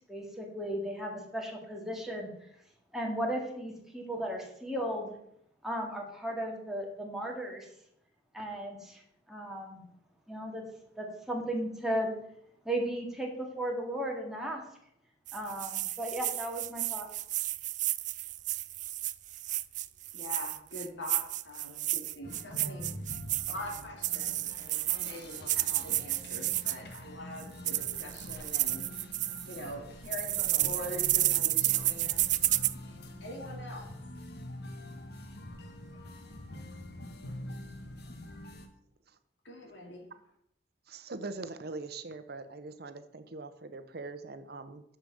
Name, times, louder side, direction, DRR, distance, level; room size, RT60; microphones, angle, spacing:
voice 1, 0.1-2.3 2.9-5.2 5.6-7.7 8.3-9.0 9.3-9.8 10.3-10.6 11.0-12.1 12.7-14.6 15.3-17.1, right 1 dB, ahead, -1 dB, 2.1 m, -35 dB
sound 1, 15.3-27.0 27.4-29.7 30.1-32.7, right 15 dB, 45° right, 0.3 m, -31 dB
voice 2, 20.1-22.9 23.5-28.9 29.4-32.3 32.9-33.0 33.2-34.0 39.4-40.1, left 1 dB, 85° left, 2 dB, 2.4 m, -43 dB
sound 2, 22.2-38.7, left 1 dB, 60° left, 1.3 m, -45 dB
voice 3, 40.9-44.8, right 3 dB, 60° right, 10 dB, 0.8 m, -42 dB
6.9 x 6.7 x 7.5 m, 0.73 s
head